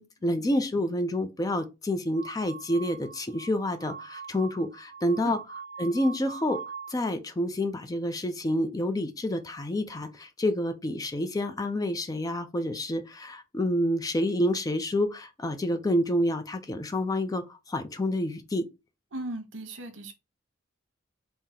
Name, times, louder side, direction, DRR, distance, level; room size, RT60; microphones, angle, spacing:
voice 1, 0.0-5.4 5.8-6.6 6.9-18.7, left 1 dB, 20° left, 0.4 m, -28 dB
sound 1, 2.1-7.0, right 6 dB, 65° right, 0.5 m, -43 dB
voice 2, 19.1-20.1, right 1 dB, 85° right, 0.9 m, -37 dB
3.7 x 2.1 x 4.2 m
head